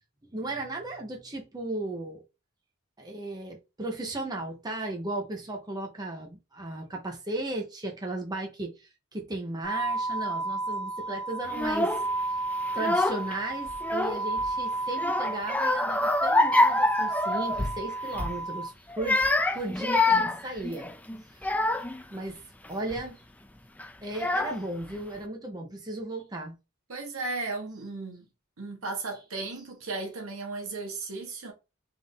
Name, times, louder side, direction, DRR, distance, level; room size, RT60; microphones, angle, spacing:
voice 1, 0.3-2.2 3.0-12.0 12.7-19.2 19.5-20.9 21.3-21.6 22.1-23.2 24.0-26.5, right 2 dB, 20° right, 0.8 m, -36 dB
sound 1, 9.6-18.7, right 2 dB, 40° left, 1.4 m, -32 dB
Child speech kid speaking / Crying sobbing, 11.5-12.1 12.7-13.4 13.7-14.5 15.0-17.8 18.1-18.4 18.9-22.0 22.6-23.0 23.8-23.9 24.1-24.9, left 2 dB, 5° left, 0.3 m, -26 dB
voice 2, 26.9-28.3 28.6-31.5, right 3 dB, 70° right, 1.3 m, -35 dB
3.6 x 2.6 x 3.6 m
head